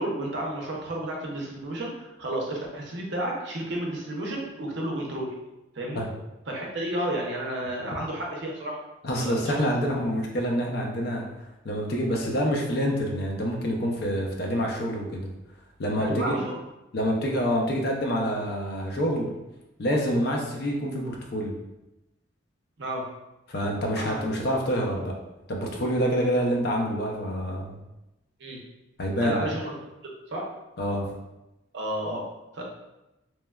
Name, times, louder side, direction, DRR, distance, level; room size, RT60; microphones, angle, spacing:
voice 1, 0.0-5.3 5.7-6.0 6.5-8.8 9.2-9.7 16.0-16.6 22.8-23.1 24.0-24.2 24.9-25.0 28.4-28.6 29.2-29.8 30.0-30.5 31.7-32.3 32.5-32.6, right 1 dB, 60° right, -1 dB, 0.6 m, -31 dB
voice 2, 9.0-11.3 11.6-15.3 15.8-16.4 16.9-19.3 19.8-21.6 23.5-25.1 25.5-27.8 29.0-29.4 30.8-31.1, equal, 50° left, 0 dB, 0.4 m, -27 dB
3.0 x 2.2 x 2.2 m, 0.96 s
head